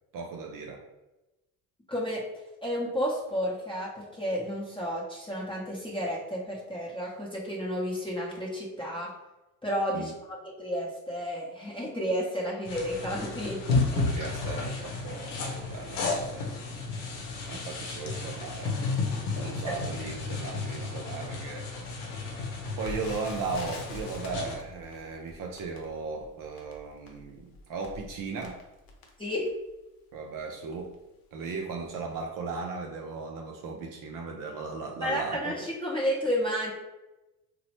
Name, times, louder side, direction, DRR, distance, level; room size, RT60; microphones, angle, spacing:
voice 1, 0.1-0.8 9.9-10.1 13.9-16.5 17.5-18.8 19.4-21.7 22.8-28.6 30.1-30.9 31.3-35.7, right 4 dB, 50° right, 1 dB, 0.5 m, -37 dB
voice 2, 1.9-2.2 2.6-9.1 9.6-13.6 19.7-19.8 29.2-29.5 35.0-36.7, equal, 10° left, -5 dB, 0.7 m, -31 dB
sound 1, 12.6-24.6, left 3 dB, 85° left, 0.7 m, -32 dB
Crackle, 22.8-29.8 30.4-30.5 30.8-31.0 31.6-31.8 32.1-32.2, left 2 dB, 55° left, 0.8 m, -46 dB
2.9 x 2.1 x 2.9 m, 1.0 s
hypercardioid pair, 60°, 44 cm